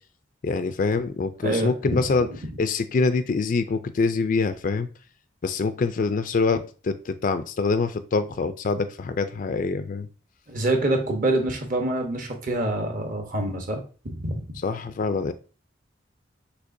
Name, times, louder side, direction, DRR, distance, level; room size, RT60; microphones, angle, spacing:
voice 1, 0.4-2.3 2.6-4.9 5.4-10.1 14.6-15.3, left 4 dB, 45° left, 10 dB, 0.3 m, -25 dB
voice 2, 1.4-1.7 10.5-13.8 14.2-14.4, right 1 dB, 45° right, 3 dB, 1.0 m, -25 dB
6.4 x 2.9 x 2.6 m, 0.36 s
head